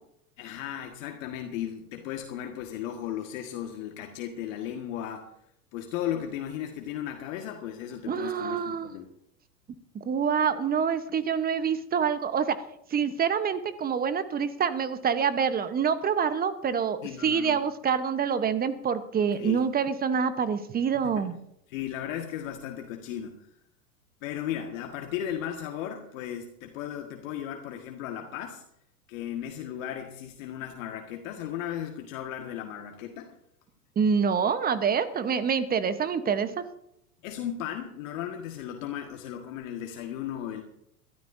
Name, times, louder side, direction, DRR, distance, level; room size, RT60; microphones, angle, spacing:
voice 1, 0.4-5.3 5.7-9.1 17.0-17.6 19.3-19.7 20.9-21.3 21.7-23.5 24.2-28.6 29.1-33.3 37.2-40.6, left 10 dB, 55° left, 3 dB, 1.8 m, -36 dB
voice 2, 8.1-8.9 9.9-12.6 12.9-21.4 34.0-36.6, right 6 dB, 20° right, 12 dB, 1.0 m, -26 dB
23.5 x 13.0 x 2.7 m, 0.77 s
hypercardioid pair, 100°, 46 cm